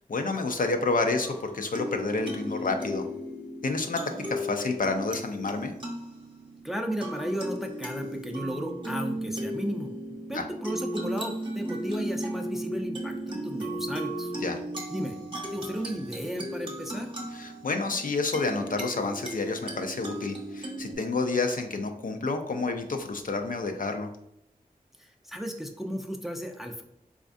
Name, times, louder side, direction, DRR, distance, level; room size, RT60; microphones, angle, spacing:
voice 1, 0.1-3.1 3.6-4.0 4.3-5.7 10.3-10.5 14.4-14.6 17.3-24.1, left 3 dB, 65° left, 5 dB, 0.4 m, -29 dB
sound 1, 1.2-20.9, right 1 dB, 35° right, 0.8 m, -36 dB
voice 2, 6.6-9.9 10.3-14.3 14.9-15.2 15.5-17.1 25.3-26.8, equal, ahead, 3 dB, 0.4 m, -34 dB
4.2 x 2.4 x 2.5 m, 0.79 s
wide cardioid pair, 65°, 15 cm